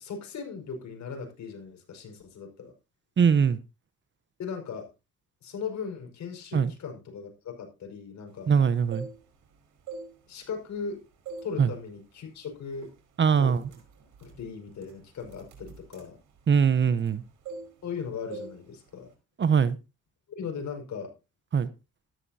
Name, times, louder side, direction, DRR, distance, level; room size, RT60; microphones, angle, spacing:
voice 1, 0.0-2.7 4.4-4.9 5.4-8.5 10.3-11.0 11.4-12.9 13.4-13.6 14.2-16.2 17.8-19.1 20.4-21.1, left 6 dB, 65° left, 4 dB, 5.3 m, -38 dB
voice 2, 3.2-3.6 6.5-6.7 8.5-9.1 11.6-11.7 13.2-13.7 16.5-17.2 19.4-19.8 21.5-21.7, right 6 dB, 40° right, 15 dB, 0.9 m, -22 dB
sound 1, 8.7-9.5 9.8-10.9 11.3-11.6 12.0-12.2 12.8-13.0 13.3-17.2 17.4-18.0 18.3-18.6 18.9-19.1, right 4 dB, 85° right, 4.6 m, -43 dB
13.5 x 12.0 x 2.8 m, 0.27 s
cardioid pair, 90°, 30 cm